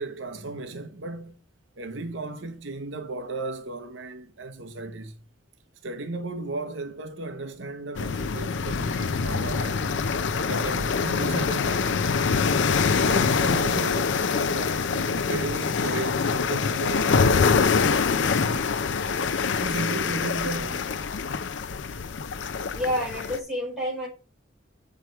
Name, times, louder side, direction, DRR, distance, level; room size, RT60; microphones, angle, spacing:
voice 1, 0.0-1.4 1.8-5.2 5.8-9.8 10.4-12.2 13.1-18.7 19.6-21.0, right 2 dB, 70° right, 0.8 m, -35 dB
sound 1, 7.9-23.4, left 5 dB, 70° left, 0.5 m, -25 dB
voice 2, 22.7-24.1, equal, ahead, 4.2 m, -28 dB
7.6 x 4.8 x 4.5 m
head